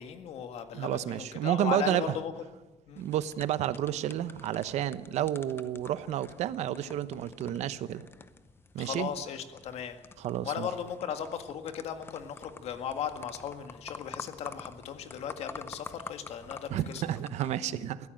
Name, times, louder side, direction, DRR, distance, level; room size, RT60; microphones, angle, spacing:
voice 1, 0.0-2.3 2.9-3.0 8.8-10.0 10.4-17.0, left 8 dB, 60° left, 7 dB, 1.9 m, -37 dB
voice 2, 0.7-2.2 3.0-8.1 8.7-9.1 10.2-10.7 16.7-18.1, right 11 dB, 65° right, 14 dB, 0.9 m, -31 dB
sound 1, 3.0-17.6, left 4 dB, 20° left, 0.7 m, -49 dB
23.0 x 15.5 x 7.8 m, 1.2 s
cardioid pair, 180°, 12 cm